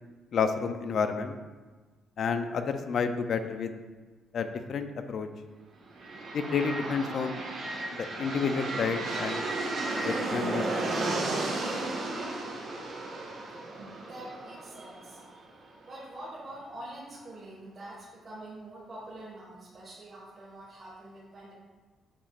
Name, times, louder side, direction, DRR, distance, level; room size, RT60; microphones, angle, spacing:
voice 1, 0.3-1.3 2.2-3.7 4.3-5.3 6.3-7.4 8.2-9.4 10.0-11.1, left 5 dB, 55° left, 8 dB, 0.5 m, -30 dB
sound 1, 5.9-15.7, right 2 dB, 60° right, 1.5 m, -34 dB
voice 2, 13.8-21.5, right 1 dB, 35° right, -8 dB, 1.7 m, -45 dB
8.4 x 5.2 x 2.5 m, 1.3 s
cardioid pair, 110°, 0 cm